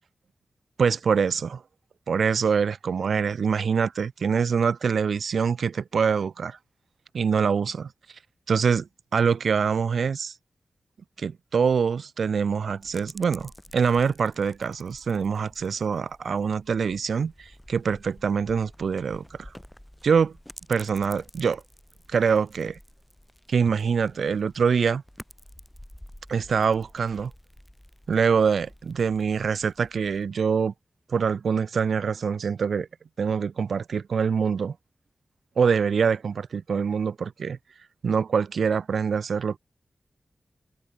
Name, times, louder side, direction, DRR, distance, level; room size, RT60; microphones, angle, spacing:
voice 1, 0.8-1.6 2.1-6.6 7.1-7.9 8.5-10.3 11.2-19.5 20.0-20.3 20.7-21.6 22.1-22.8 23.5-25.0 26.3-27.3 28.1-30.7 31.1-32.9 33.2-34.8 35.6-37.6 38.0-39.6, right 6 dB, 90° right, 0.6 m, -24 dB
sound 1, 12.8-30.2, equal, 5° left, 4.7 m, -50 dB
wide cardioid pair, 130°, 0 cm